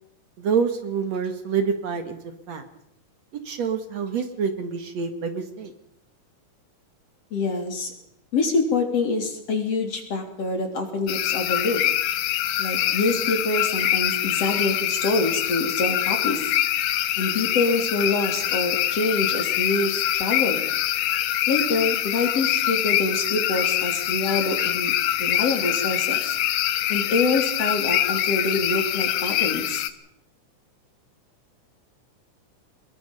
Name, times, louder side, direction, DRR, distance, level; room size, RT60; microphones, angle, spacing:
voice 1, 0.4-2.2 2.5-2.6 3.3-5.7, right 6 dB, 55° right, 8 dB, 2.8 m, -27 dB
voice 2, 7.3-7.9 8.3-11.8 12.6-16.5 17.2-20.6 21.5-24.9 25.2-26.4 26.9-29.8, left 3 dB, 50° left, 4 dB, 4.4 m, -26 dB
sound 1, 11.1-29.9, left 12 dB, 80° left, 2.6 m, -24 dB
24.5 x 21.5 x 5.5 m, 0.77 s
omnidirectional pair, 3.7 m